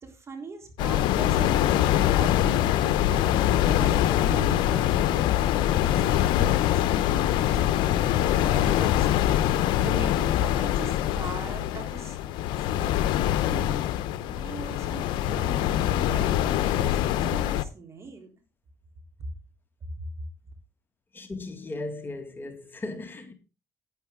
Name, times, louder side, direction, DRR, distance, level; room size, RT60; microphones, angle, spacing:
voice 1, 0.0-3.4 3.6-12.2 12.6-13.8 14.2-18.3, right 3 dB, 35° right, 3.6 m, -41 dB
Agua olas audacity, 0.8-17.6, left 12 dB, 75° left, 0.7 m, -24 dB
voice 2, 21.1-23.3, left 2 dB, 25° left, 2.0 m, -37 dB
11.0 x 9.6 x 3.7 m
supercardioid pair, 80°, 8 cm